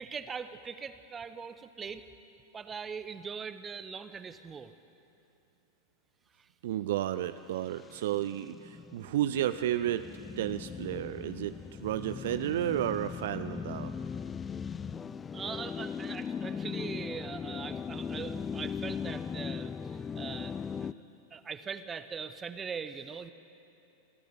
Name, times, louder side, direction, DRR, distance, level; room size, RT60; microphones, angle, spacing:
voice 1, 0.0-2.0 2.5-4.7 15.3-19.7 20.1-20.9 21.3-23.3, right 6 dB, 20° right, 11 dB, 1.1 m, -41 dB
voice 2, 6.6-10.1 10.4-11.5 11.8-13.9, right 12 dB, 55° right, 11 dB, 0.6 m, -32 dB
sound 1, 7.6-20.9, left 6 dB, 20° left, 0.5 m, -39 dB
25.0 x 13.5 x 9.6 m, 2.8 s
figure-of-eight pair, 90°, 0 cm